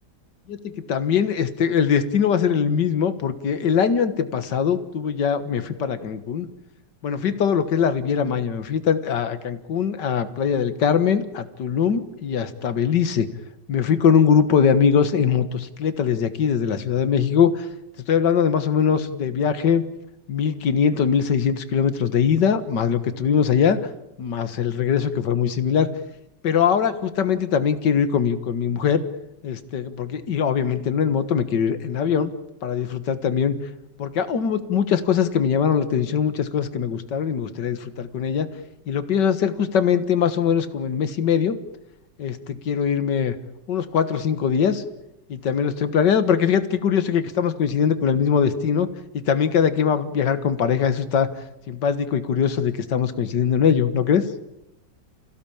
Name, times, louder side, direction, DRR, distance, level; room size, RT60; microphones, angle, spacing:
voice 1, 0.5-6.5 7.0-13.3 13.7-17.7 18.1-19.8 20.3-23.8 24.2-25.9 26.4-29.0 29.4-32.3 32.6-33.5 34.0-38.5 38.9-41.6 42.2-43.4 43.7-44.8 45.3-48.9 49.1-51.3 51.7-54.3, left 7 dB, 70° left, 11 dB, 2.1 m, -21 dB
28.0 x 16.5 x 8.8 m, 0.86 s
omnidirectional pair, 2.0 m